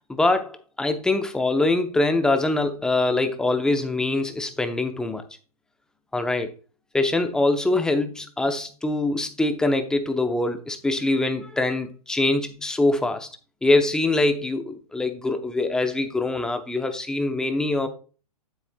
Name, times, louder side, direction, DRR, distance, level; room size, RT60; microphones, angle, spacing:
voice 1, 0.1-5.2 6.1-6.5 6.9-13.3 13.6-17.9, left 2 dB, 5° left, 0.7 m, -23 dB
8.8 x 8.1 x 2.2 m
hypercardioid pair, 140°, 20 cm